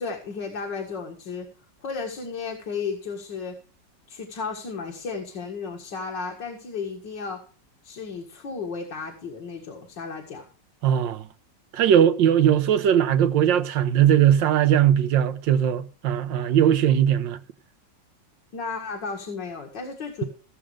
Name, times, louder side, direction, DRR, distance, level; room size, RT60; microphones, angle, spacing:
voice 1, 0.0-1.5 1.8-3.6 4.1-7.4 7.8-10.5 18.5-20.2, left 5 dB, 75° left, 2.6 m, -33 dB
voice 2, 10.8-11.3 11.7-17.4, right 10 dB, 80° right, 1.6 m, -19 dB
16.5 x 7.5 x 5.0 m
omnidirectional pair, 2.0 m